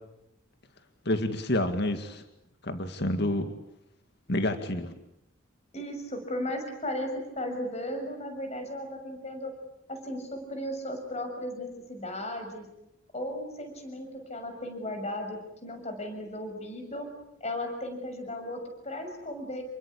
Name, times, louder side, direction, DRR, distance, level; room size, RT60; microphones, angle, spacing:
voice 1, 1.1-2.2 2.6-3.5 4.3-5.0, left 1 dB, 55° left, 7 dB, 2.1 m, -28 dB
voice 2, 5.7-9.5 9.9-12.7 13.1-17.1 17.4-19.6, left 1 dB, 35° left, 6 dB, 6.6 m, -36 dB
29.0 x 23.0 x 8.6 m, 0.85 s
head